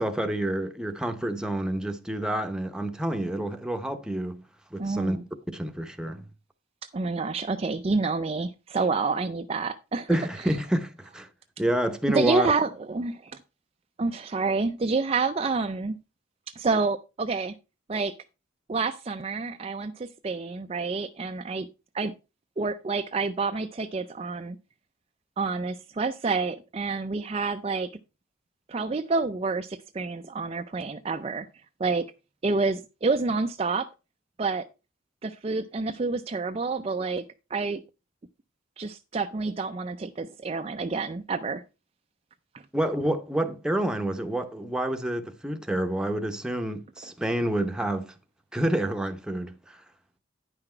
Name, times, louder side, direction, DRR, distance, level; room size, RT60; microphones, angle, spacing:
voice 1, 0.0-4.4 4.7-5.2 5.5-6.3 10.1-11.3 11.6-12.5 42.7-48.1 48.5-49.8, right 1 dB, 5° right, 0.8 m, -28 dB
voice 2, 4.8-5.2 6.9-10.2 10.5-10.6 12.1-13.3 14.0-16.0 16.6-17.5 17.9-18.1 18.7-21.7 21.9-22.1 22.6-24.6 25.4-27.9 28.7-31.5 31.8-32.0 32.4-33.9 34.4-34.6 35.2-37.2 37.5-37.8 38.8-41.6, right 4 dB, 30° right, 0.4 m, -28 dB
9.8 x 5.9 x 4.4 m
head